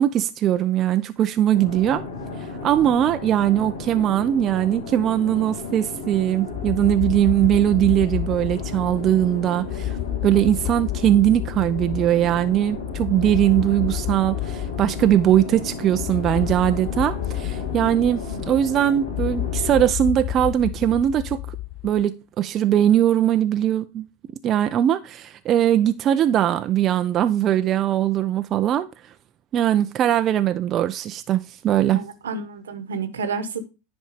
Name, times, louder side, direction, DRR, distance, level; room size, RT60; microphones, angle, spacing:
voice 1, 0.0-2.0 2.4-10.0 10.2-21.6 21.8-24.1 24.4-28.9 29.5-32.1, right 11 dB, 35° right, 0.5 m, -20 dB
sound 1, 1.5-19.9, left 3 dB, 80° left, 2.4 m, -34 dB
sound 2, 6.5-22.1, left 15 dB, 35° left, 0.4 m, -31 dB
voice 2, 31.8-33.6, right 4 dB, 80° right, 1.1 m, -30 dB
10.0 x 4.3 x 5.0 m
hypercardioid pair, 95°, 0 cm